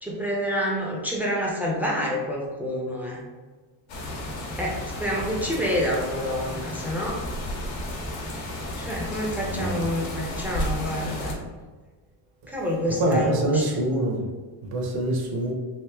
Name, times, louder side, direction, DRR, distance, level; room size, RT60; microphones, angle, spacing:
voice 1, 0.0-3.2 4.6-7.2 8.8-11.4 12.5-13.8, equal, 5° right, -4 dB, 0.6 m, -28 dB
sound 1, 3.9-11.3, left 1 dB, 65° left, 1.0 m, -33 dB
voice 2, 9.4-9.8 13.0-14.2 14.7-15.5, right 1 dB, 50° right, 0 dB, 0.8 m, -25 dB
3.1 x 2.7 x 3.3 m, 1.4 s
cardioid pair, 120°, 49 cm